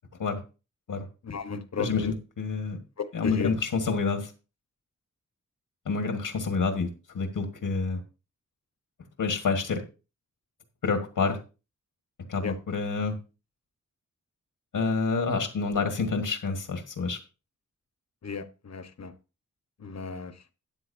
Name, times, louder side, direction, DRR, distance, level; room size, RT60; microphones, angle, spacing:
voice 1, 1.2-2.1 3.0-3.5 12.4-12.5 18.2-19.1 19.8-20.3, left 5 dB, 55° left, 11 dB, 1.2 m, -34 dB
voice 2, 1.8-2.8 3.1-4.3 5.8-6.9 7.1-8.0 9.2-9.8 10.8-11.4 12.3-13.2 14.7-17.2, left 4 dB, 85° left, 6 dB, 1.7 m, -28 dB
13.0 x 9.6 x 2.7 m, 0.32 s
wide cardioid pair, 95°, 32 cm